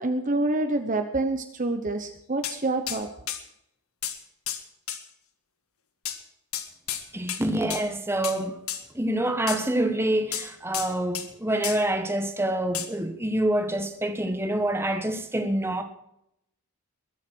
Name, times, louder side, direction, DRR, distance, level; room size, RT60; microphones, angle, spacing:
voice 1, 0.0-3.1, right 2 dB, 35° right, 0.9 m, -27 dB
sound 1, 2.4-2.6 2.9-3.0 3.3-3.4 4.0-4.2 4.5-4.6 4.9-5.0 6.0-6.2 6.5-7.0 7.3-7.4 7.7-7.9 8.2-8.4 8.7-8.8 9.5-9.6 10.3-11.3 11.6-11.8 12.7-12.9, left 10 dB, 75° left, 1.7 m, -32 dB
voice 2, 7.1-8.6 8.9-15.8, right 1 dB, 10° right, 1.3 m, -26 dB
21.5 x 7.4 x 6.2 m
head